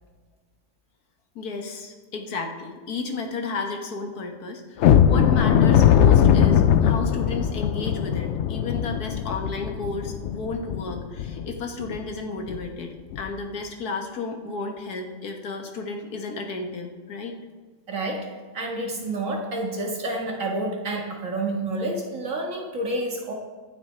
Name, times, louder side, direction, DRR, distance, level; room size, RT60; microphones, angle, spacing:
voice 1, 1.4-17.4, left 3 dB, 65° left, 3 dB, 1.7 m, -33 dB
sound 1, 4.8-11.5 11.9-12.0 12.5-12.6 13.1-13.3, left 9 dB, 80° left, 0.6 m, -20 dB
voice 2, 17.9-18.3 18.5-23.3, right 2 dB, 50° right, 0 dB, 2.1 m, -29 dB
23.5 x 7.9 x 3.3 m, 1.4 s
omnidirectional pair, 1.8 m